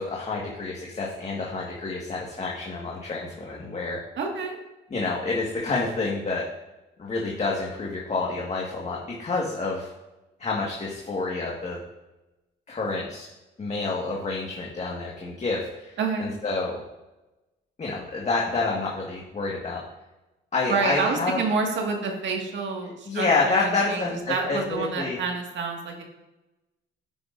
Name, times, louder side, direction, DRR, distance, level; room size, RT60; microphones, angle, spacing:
voice 1, 0.0-4.0 4.9-6.4 7.0-9.9 10.4-11.8 12.7-13.3 13.6-15.9 16.2-16.8 17.8-19.8 20.5-21.4 23.1-25.2, left 3 dB, 35° left, -3 dB, 1.7 m, -28 dB
voice 2, 4.2-4.6 16.0-16.3 20.7-26.0, right 4 dB, 65° right, 1 dB, 1.9 m, -28 dB
9.8 x 9.2 x 2.6 m, 1.0 s
cardioid pair, 90°, 20 cm